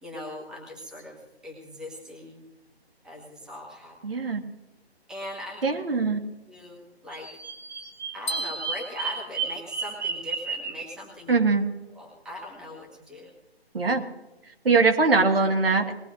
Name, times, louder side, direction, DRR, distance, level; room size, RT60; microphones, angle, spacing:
voice 1, 0.0-2.4 3.0-4.0 5.1-5.6 6.5-7.3 8.1-11.3 11.9-13.3, left 1 dB, ahead, -3 dB, 1.3 m, -40 dB
voice 2, 4.0-4.4 5.6-6.2 11.3-11.6 13.7-14.0 14.7-15.9, right 4 dB, 60° right, 4 dB, 1.7 m, -22 dB
Bird vocalization bird call bird song, 7.1-10.9, right 5 dB, 40° right, 1.2 m, -33 dB
sound 1, 8.3-10.2, equal, 45° left, 1.9 m, -36 dB
21.0 x 16.5 x 2.5 m, 1.1 s
figure-of-eight pair, 150°, 32 cm